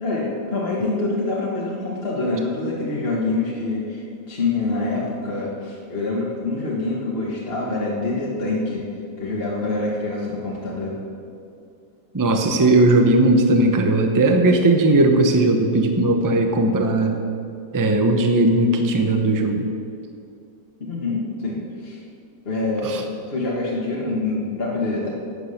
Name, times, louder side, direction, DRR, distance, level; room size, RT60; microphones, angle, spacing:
voice 1, 0.0-8.8 9.2-10.9 20.8-22.0 22.4-25.1, left 2 dB, 35° left, -5 dB, 1.7 m, -25 dB
voice 2, 12.1-17.1 17.7-19.7 22.8-23.0, right 2 dB, 20° right, 4 dB, 0.5 m, -17 dB
11.5 x 8.2 x 6.7 m, 2.6 s
omnidirectional pair, 1.9 m